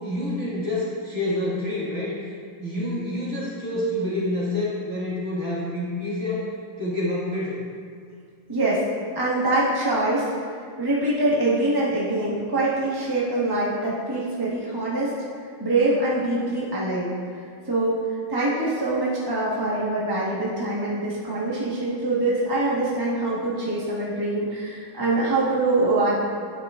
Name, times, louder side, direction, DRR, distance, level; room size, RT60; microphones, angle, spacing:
voice 1, 0.0-2.4 2.6-6.5 6.8-7.6, left 1 dB, 35° right, -7 dB, 2.0 m, -27 dB
voice 2, 8.5-8.8 9.1-10.3 10.8-15.1 15.6-17.1 17.7-18.0 18.3-26.4, right 2 dB, 15° right, -7 dB, 0.8 m, -24 dB
10.5 x 7.8 x 2.4 m, 2.1 s
omnidirectional pair, 2.3 m